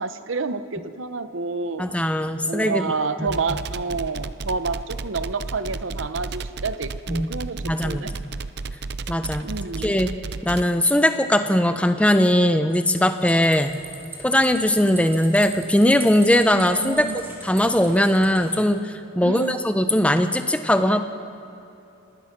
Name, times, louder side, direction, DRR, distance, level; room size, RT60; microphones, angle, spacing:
voice 1, 0.0-1.9 2.4-8.2 9.4-9.9 16.6-17.2 19.2-19.6, right 4 dB, 80° right, 12 dB, 0.9 m, -29 dB
voice 2, 1.8-2.9 3.2-3.3 7.1-7.3 7.6-8.1 9.1-9.5 9.8-10.1 10.4-13.8 14.2-17.1 17.4-21.0, left 1 dB, 5° left, 9 dB, 0.8 m, -20 dB
sound 1, 3.3-10.6, right 3 dB, 55° right, 0.6 m, -32 dB
sound 2, 13.2-18.6, right 2 dB, 10° right, 2.8 m, -40 dB
27.5 x 19.0 x 6.0 m, 2.9 s
head